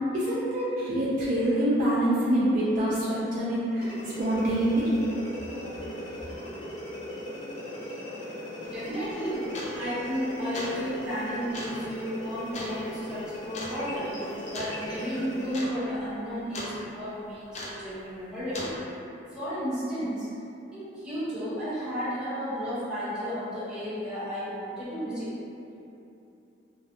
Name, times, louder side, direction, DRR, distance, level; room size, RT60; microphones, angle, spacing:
voice 1, 0.1-3.9 4.2-5.0, right 1 dB, 45° right, -9 dB, 0.4 m, -25 dB
sound 1, 3.8-15.6, left 1 dB, 80° left, 0.9 m, -38 dB
sound 2, 8.6-8.8 9.5-9.9 10.4-10.8 11.5-11.8 12.5-12.8 13.5-13.8 14.5-14.8 15.1-15.2 15.5-15.7 16.0-16.7 17.5-17.9 18.5-18.8, left 1 dB, 40° left, 0.4 m, -37 dB
voice 2, 8.7-14.2 14.5-18.8 19.3-20.3 20.7-25.4, equal, 5° right, -14 dB, 1.0 m, -33 dB
2.6 x 2.2 x 2.5 m, 2.8 s
head